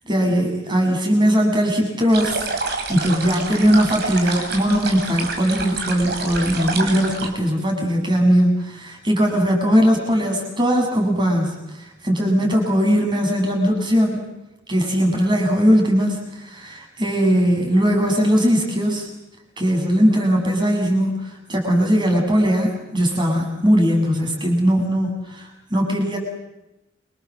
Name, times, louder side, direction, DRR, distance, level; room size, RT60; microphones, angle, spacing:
voice 1, 0.1-2.4 2.9-14.2 14.7-19.1 19.6-26.2, equal, 25° right, 3 dB, 7.7 m, -19 dB
sound 1, 2.1-7.3, right 3 dB, 55° right, 6.0 m, -28 dB
29.0 x 26.0 x 7.7 m, 0.93 s
head